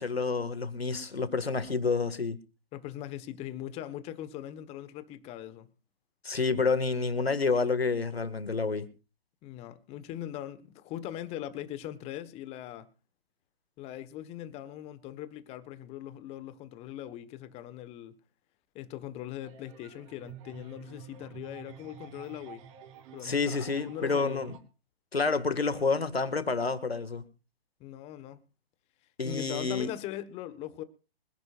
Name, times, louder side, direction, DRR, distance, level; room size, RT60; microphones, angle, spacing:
voice 1, 0.0-2.4 6.2-8.9 23.2-24.5 25.1-27.2 29.2-29.9, left 4 dB, 85° left, 2.0 m, -29 dB
voice 2, 2.7-5.7 9.4-12.9 13.8-18.2 18.7-22.7 23.1-24.5 27.8-28.4 29.2-30.8, left 12 dB, 20° left, 1.3 m, -41 dB
sound 1, 19.4-24.6, right 8 dB, 35° right, 2.9 m, -49 dB
25.0 x 11.5 x 2.5 m
figure-of-eight pair, 130°, 30 cm